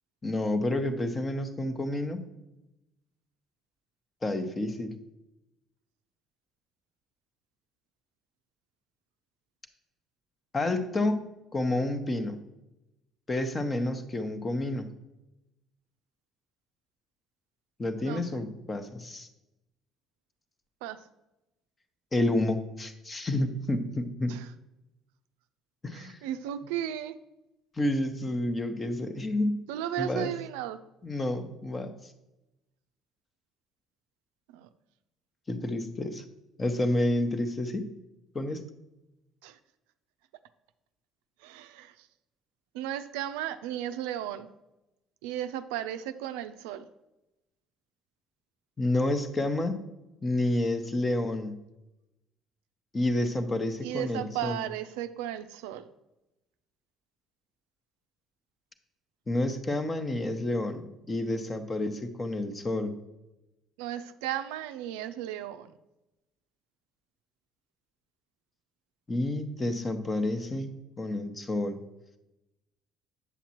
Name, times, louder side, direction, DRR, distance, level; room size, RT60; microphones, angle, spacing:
voice 1, 0.2-2.2 4.2-5.0 10.5-12.4 13.3-14.9 17.8-19.3 22.1-24.3 25.8-26.2 27.8-29.6 30.0-30.3 31.0-31.9 35.5-36.2 36.6-37.9 38.3-38.6 48.8-49.8 50.2-51.6 52.9-54.6 59.3-62.9 69.1-71.8, left 1 dB, 30° left, 9 dB, 0.9 m, -29 dB
voice 2, 18.0-18.4 20.8-21.0 24.3-24.5 25.9-27.2 29.7-30.8 34.5-34.7 39.4-39.6 41.4-42.1 42.7-44.5 45.2-46.9 53.8-55.9 63.8-65.7, right 11 dB, 80° right, 11 dB, 0.3 m, -35 dB
8.3 x 7.1 x 2.9 m, 0.95 s
hypercardioid pair, 60°, 0 cm